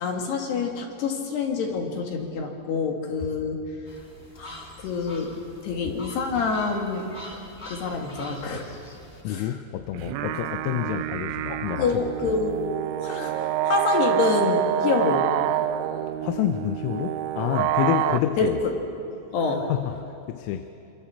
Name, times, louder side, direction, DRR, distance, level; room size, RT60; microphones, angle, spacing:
voice 1, 0.0-3.6 4.4-5.4 5.6-7.1 7.7-8.7 9.3-9.5 11.5-12.6 13.0-15.3 18.4-18.7 19.3-19.7, left 4 dB, 60° left, 2 dB, 3.9 m, -27 dB
sound 1, 3.9-9.2, left 1 dB, 20° left, 1.5 m, -44 dB
voice 2, 9.3-12.3 16.2-18.6 19.5-20.7, left 12 dB, 80° left, 8 dB, 3.4 m, -29 dB
sound 2, 9.9-18.2, right 11 dB, 80° right, 2.9 m, -27 dB
27.5 x 26.5 x 7.2 m, 2.8 s
omnidirectional pair, 5.9 m